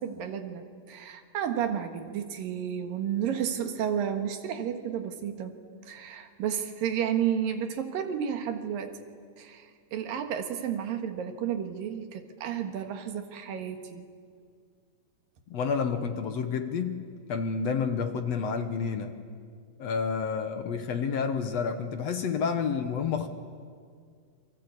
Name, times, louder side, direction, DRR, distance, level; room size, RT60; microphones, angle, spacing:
voice 1, 0.0-5.5 5.9-9.0 9.4-14.0, right 9 dB, 85° right, 6 dB, 3.4 m, -32 dB
voice 2, 15.5-17.0 17.3-19.2 19.8-23.3, left 6 dB, 60° left, 7 dB, 2.0 m, -29 dB
28.0 x 24.5 x 8.4 m, 2.1 s
omnidirectional pair, 3.9 m